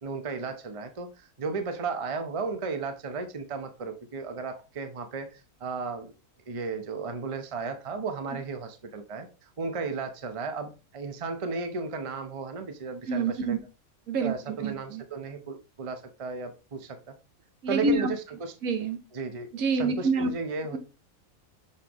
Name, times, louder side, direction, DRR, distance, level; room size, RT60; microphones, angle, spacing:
voice 1, 0.0-6.1 6.5-9.3 9.6-13.6 14.2-17.1 17.7-18.5 19.1-19.5 19.8-20.8, right 4 dB, 30° right, 0.7 m, -34 dB
voice 2, 13.1-13.6 14.1-15.0 17.6-18.1 18.6-19.0 19.5-20.3 20.7-20.8, right 3 dB, 75° right, 1.4 m, -27 dB
6.6 x 5.7 x 3.0 m
omnidirectional pair, 1.5 m